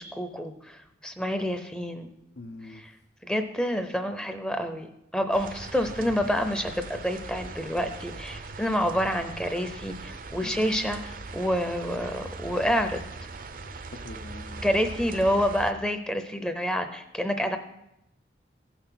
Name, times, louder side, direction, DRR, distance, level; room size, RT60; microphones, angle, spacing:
voice 1, 0.0-2.1 2.7-2.9 3.2-13.0 14.6-17.6, equal, 5° left, 7 dB, 0.6 m, -28 dB
voice 2, 2.4-2.8 10.4-10.8 14.0-14.8 15.2-15.3, left 2 dB, 70° left, 3 dB, 0.8 m, -44 dB
sound 1, 5.3-15.7, right 3 dB, 50° right, 0.7 m, -40 dB
15.5 x 5.9 x 5.8 m, 0.87 s
head